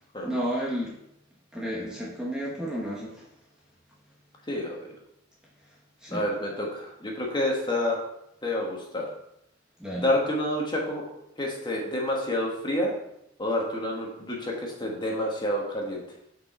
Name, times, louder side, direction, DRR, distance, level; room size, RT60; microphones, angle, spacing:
voice 1, 0.2-0.9 1.5-3.3 6.0-6.3 9.8-10.1, equal, 5° right, -5 dB, 0.9 m, -32 dB
voice 2, 4.5-4.9 6.1-8.0 8.4-9.1 10.0-11.1 11.4-12.9 13.4-16.0, left 1 dB, 25° left, -1 dB, 1.4 m, -28 dB
6.4 x 4.8 x 4.3 m, 0.79 s
head